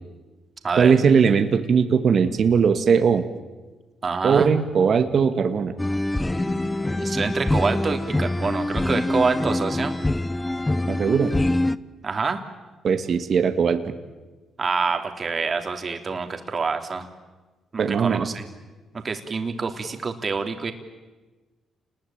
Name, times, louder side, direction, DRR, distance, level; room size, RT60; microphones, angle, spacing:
voice 1, 0.8-3.2 4.2-5.7 10.9-11.3 12.8-13.9 17.8-18.3, right 6 dB, 60° right, 9 dB, 1.9 m, -19 dB
voice 2, 4.0-4.5 6.9-9.9 12.0-12.4 14.6-17.1 17.7-18.4 18.9-20.7, right 4 dB, 40° right, 5 dB, 3.1 m, -26 dB
sound 1, 5.8-11.8, left 1 dB, 15° left, 0.8 m, -24 dB
29.5 x 20.5 x 8.9 m, 1.3 s
cardioid pair, 75°, 0 cm